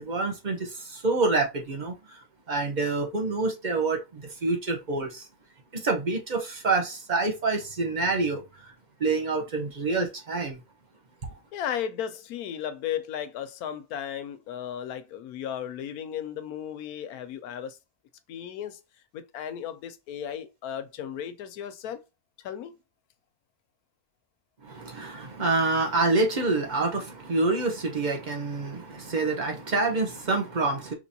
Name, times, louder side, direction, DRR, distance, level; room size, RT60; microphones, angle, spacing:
voice 1, 0.0-2.2 2.5-5.3 5.7-8.7 9.0-10.6 24.6-30.9, right 3 dB, 35° right, 1.0 m, -27 dB
voice 2, 11.5-17.8 18.3-18.8 19.1-22.0 22.4-22.8, left 9 dB, 90° left, 1.1 m, -35 dB
5.2 x 3.2 x 2.7 m
omnidirectional pair, 1.5 m